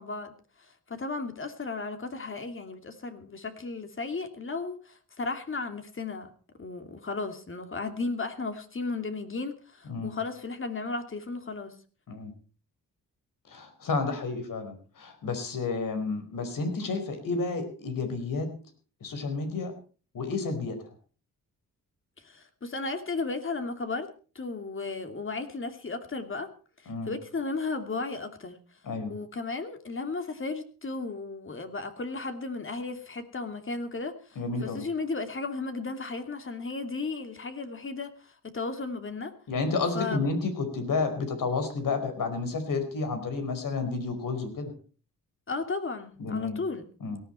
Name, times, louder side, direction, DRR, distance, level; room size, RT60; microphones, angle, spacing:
voice 1, 0.0-6.3 6.6-11.8 22.2-24.1 24.3-26.5 26.8-28.6 29.1-39.3 39.9-40.3 45.5-46.9, left 3 dB, 35° left, 7 dB, 2.8 m, -35 dB
voice 2, 13.5-18.5 19.0-19.7 20.1-20.8 26.9-27.1 28.8-29.2 34.3-34.8 39.5-44.7 46.2-46.6 47.0-47.2, left 4 dB, 65° left, 7 dB, 4.8 m, -31 dB
18.0 x 14.5 x 4.5 m, 0.39 s
cardioid pair, 85°, 34 cm